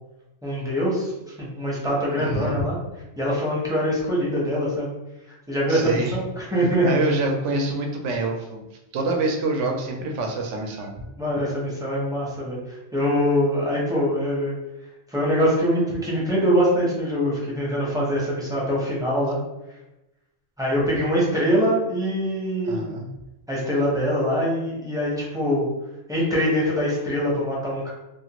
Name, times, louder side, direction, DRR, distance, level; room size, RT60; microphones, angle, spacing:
voice 1, 0.4-1.1 1.4-2.8 3.2-4.9 5.5-6.9 11.2-14.6 15.1-19.4 20.6-22.9 23.5-25.7 26.1-27.9, equal, 5° right, -6 dB, 0.5 m, -23 dB
voice 2, 2.2-2.5 5.7-6.2 6.8-8.6 8.9-10.9 22.6-23.1, right 2 dB, 80° right, 2 dB, 0.9 m, -26 dB
2.4 x 2.4 x 2.8 m, 0.95 s
omnidirectional pair, 1.2 m